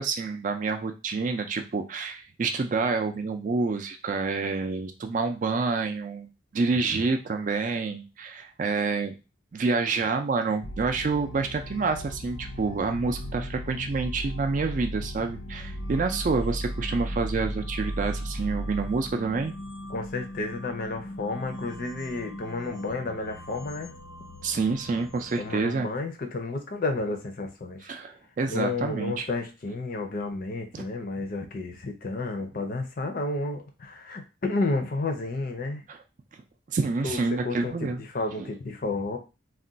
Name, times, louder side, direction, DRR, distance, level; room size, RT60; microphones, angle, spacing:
voice 1, 0.0-9.2 9.5-19.5 24.4-25.9 27.8-29.3 30.7-30.8 35.9-36.0 36.3-36.4 36.7-38.0 38.4-38.5, right 4 dB, 40° right, 6 dB, 0.3 m, -28 dB
sound 1, 10.6-25.6, equal, 90° left, 0.7 m, -37 dB
voice 2, 19.9-23.9 25.4-27.9 28.5-35.8 37.0-39.2, left 3 dB, 50° left, 5 dB, 0.5 m, -31 dB
2.4 x 2.2 x 3.8 m, 0.29 s
head